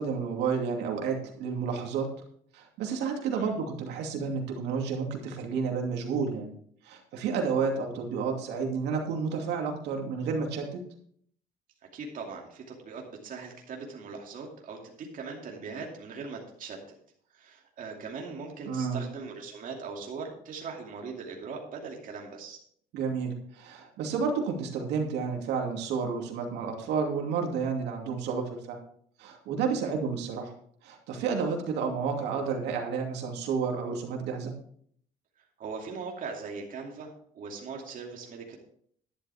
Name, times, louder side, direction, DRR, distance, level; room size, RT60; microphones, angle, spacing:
voice 1, 0.0-2.1 2.5-6.5 6.8-10.8 18.7-19.0 22.9-28.8 29.2-30.5 30.8-34.5, right 5 dB, 85° right, 2 dB, 2.6 m, -31 dB
voice 2, 11.9-16.8 17.3-22.6 29.8-29.9 35.6-38.6, right 4 dB, 55° right, 0 dB, 2.6 m, -40 dB
11.5 x 11.0 x 3.5 m, 0.62 s
cardioid pair, 110°, 17 cm